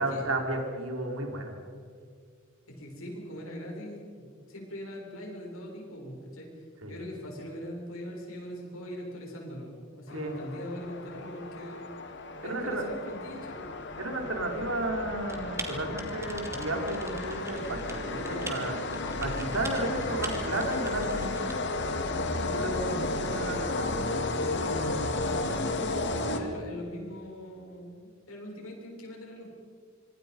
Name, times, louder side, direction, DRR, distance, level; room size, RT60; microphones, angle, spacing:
voice 1, 0.0-1.6 6.8-7.0 10.1-10.3 12.4-12.8 14.0-21.6 22.5-23.9 25.3-25.5, right 2 dB, 75° right, 2 dB, 4.6 m, -33 dB
voice 2, 2.7-6.5 6.8-11.9 12.4-13.7 23.4-23.6 24.4-24.8 25.4-29.5, equal, 80° left, -1 dB, 7.2 m, -41 dB
sound 1, 10.1-26.9, left 2 dB, 60° left, 2.1 m, -33 dB
Typing, 15.3-21.5, right 2 dB, 15° right, 2.7 m, -43 dB
25.5 x 25.0 x 5.5 m, 2.1 s
head